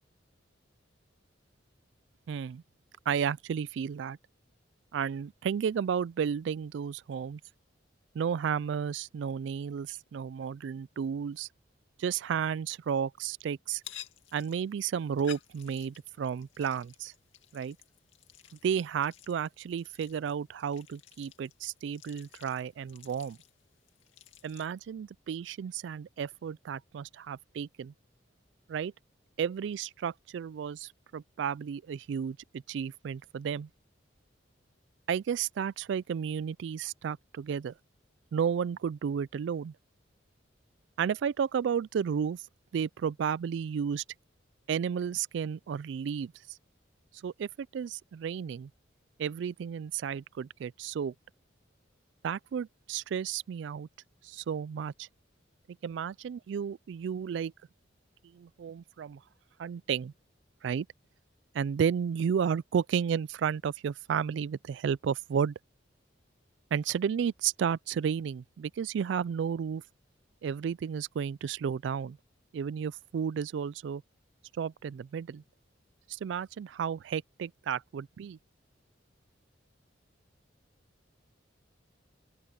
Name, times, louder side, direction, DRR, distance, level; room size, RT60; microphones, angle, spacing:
voice 1, 2.3-2.6 3.1-4.2 4.9-7.4 8.1-11.5 12.0-13.8 14.3-17.1 17.5-17.8 18.6-23.4 24.4-27.9 28.7-28.9 29.4-33.7 35.1-37.7 38.3-39.7 41.0-42.4 42.7-44.0 44.7-46.3 47.2-48.7 49.2-51.1 52.2-53.9 54.2-55.1 55.8-57.5 58.2-59.2 59.6-60.1 60.6-60.9 61.5-65.5 66.7-69.8 70.4-72.2 72.5-74.0 74.6-75.4 76.1-78.4, right 7 dB, 65° right, 0.3 m, -32 dB
sound 1, 13.7-24.7, left 11 dB, 90° left, 2.3 m, -53 dB
open air
head